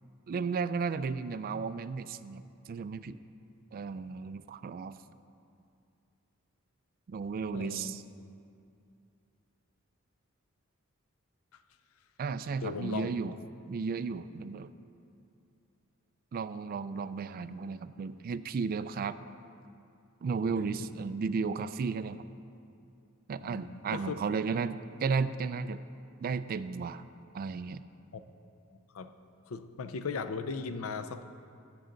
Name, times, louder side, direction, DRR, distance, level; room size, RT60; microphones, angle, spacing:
voice 1, 0.3-2.4 2.7-3.2 3.7-5.0 7.1-8.0 12.2-13.4 13.7-14.7 16.3-19.2 20.2-22.2 23.3-25.8 26.2-27.0 27.3-27.8, right 5 dB, 45° right, 14 dB, 0.3 m, -34 dB
voice 2, 7.5-7.9 12.6-13.1 23.4-24.2 28.9-29.1 29.5-31.2, left 5 dB, 70° left, 11 dB, 0.5 m, -37 dB
13.5 x 8.0 x 3.8 m, 2.5 s
head